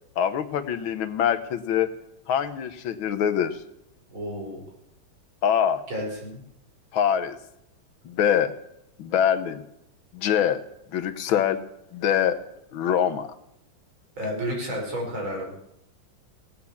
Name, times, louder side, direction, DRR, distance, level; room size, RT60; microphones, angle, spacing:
voice 1, 0.2-1.9 2.3-3.6 5.4-5.8 6.9-7.4 8.0-8.5 9.0-9.6 10.1-10.6 10.9-11.6 11.9-12.4 12.7-13.3, left 9 dB, 75° left, 11 dB, 1.7 m, -24 dB
voice 2, 4.1-4.6 5.9-6.4 14.2-15.5, equal, 70° right, -1 dB, 5.7 m, -31 dB
18.5 x 8.8 x 7.1 m, 0.79 s
omnidirectional pair, 2.3 m